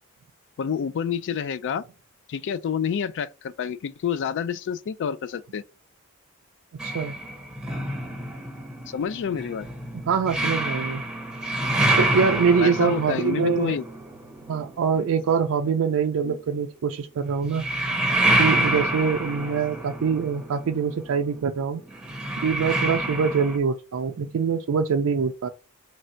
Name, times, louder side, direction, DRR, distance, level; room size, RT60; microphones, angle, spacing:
voice 1, 0.6-1.8 2.3-5.6 8.9-9.7 12.6-13.8 16.2-16.4 19.4-19.5, left 7 dB, 55° left, 0.3 m, -28 dB
sound 1, 6.8-15.3 17.4-23.6, right 1 dB, 5° right, 0.8 m, -27 dB
voice 2, 6.8-7.2 10.1-11.0 12.0-13.8 14.5-17.6 18.4-21.8 22.4-25.5, right 6 dB, 65° right, 0.4 m, -24 dB
3.2 x 2.6 x 4.3 m
head